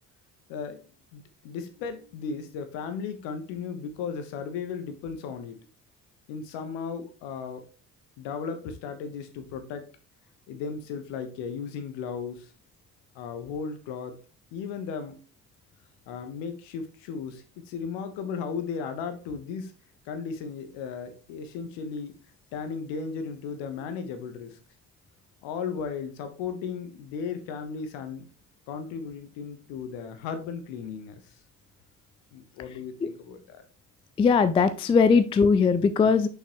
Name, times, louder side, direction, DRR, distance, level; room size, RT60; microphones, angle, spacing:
voice 1, 0.5-0.8 1.1-5.6 6.3-7.7 8.2-9.9 10.5-12.5 13.1-14.2 14.5-15.1 16.1-19.7 20.0-22.1 22.5-24.6 25.4-28.3 28.7-31.3 32.3-33.6, left 6 dB, 65° left, 8 dB, 1.3 m, -35 dB
voice 2, 34.2-36.3, left 5 dB, 15° left, 13 dB, 0.3 m, -20 dB
6.3 x 5.7 x 3.0 m, 0.36 s
figure-of-eight pair, 55°, 47 cm